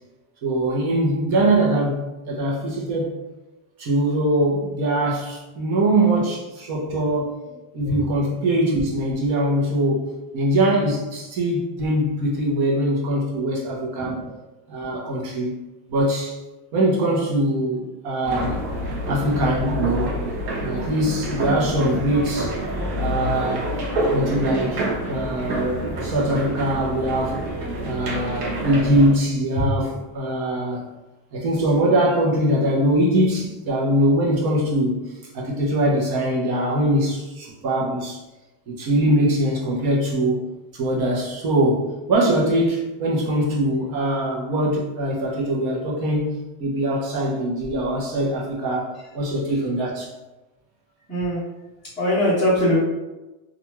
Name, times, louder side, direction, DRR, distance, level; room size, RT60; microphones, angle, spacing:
voice 1, 0.4-3.2 3.8-7.4 7.7-14.1 14.7-15.5 15.9-16.4 16.7-18.6 19.1-20.2 20.6-22.6 22.9-23.7 24.1-27.4 27.8-30.8 31.3-35.0 35.3-38.2 38.7-40.4 40.7-50.1, right 1 dB, 50° right, -3 dB, 0.8 m, -22 dB
voice 2, 13.9-14.3 14.9-15.0 51.1-51.4 52.0-52.8, left 1 dB, 5° left, -16 dB, 0.6 m, -22 dB
sound 1, 18.2-29.1, right 1 dB, 85° right, 1.0 m, -27 dB
2.5 x 2.3 x 3.0 m, 1.1 s
cardioid pair, 175°, 50 cm